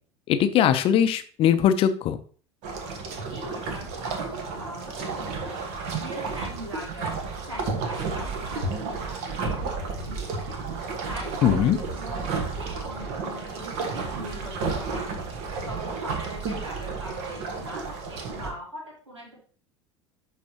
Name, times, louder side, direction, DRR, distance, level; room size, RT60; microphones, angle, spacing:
voice 1, 0.3-2.2 11.4-11.8, left 9 dB, 40° left, 10 dB, 0.7 m, -20 dB
sound 1, 2.6-18.5, right 4 dB, 50° right, 1.4 m, -32 dB
voice 2, 3.3-5.5 5.9-7.2 7.5-10.6 11.1-15.1 15.6-19.4, equal, 80° right, -2 dB, 2.7 m, -41 dB
11.5 x 4.1 x 2.9 m, 0.42 s
figure-of-eight pair, 75°, 15 cm